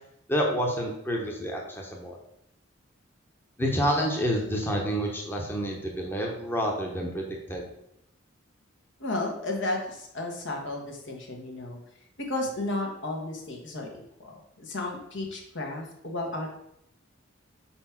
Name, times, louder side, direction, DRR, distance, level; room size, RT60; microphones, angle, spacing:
voice 1, 0.3-2.2 3.6-7.6, equal, 10° left, -1 dB, 0.9 m, -28 dB
voice 2, 9.0-11.8 12.3-14.3 14.6-16.5, left 2 dB, 65° left, 1 dB, 1.4 m, -33 dB
4.6 x 4.3 x 5.8 m, 0.78 s
head